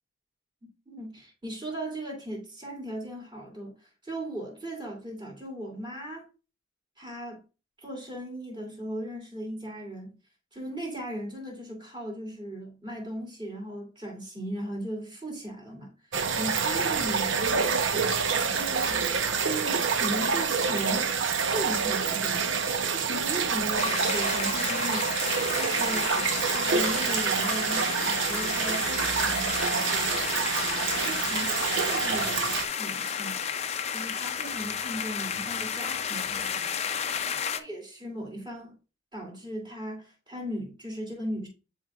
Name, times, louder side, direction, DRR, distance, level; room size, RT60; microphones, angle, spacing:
voice 1, 0.9-3.8 4.0-6.3 7.0-7.4 7.8-10.2 10.5-18.2 18.5-19.0 19.4-22.5 22.8-30.1 30.9-32.5 32.8-33.4 33.9-36.7 37.5-38.7 39.1-41.5, right 1 dB, 25° right, 2.8 m, -37 dB
sound 1, 16.1-32.7, right 5 dB, 75° right, 0.7 m, -27 dB
sound 2, 23.8-37.6, left 7 dB, 35° left, 0.5 m, -32 dB
11.0 x 4.3 x 2.4 m
head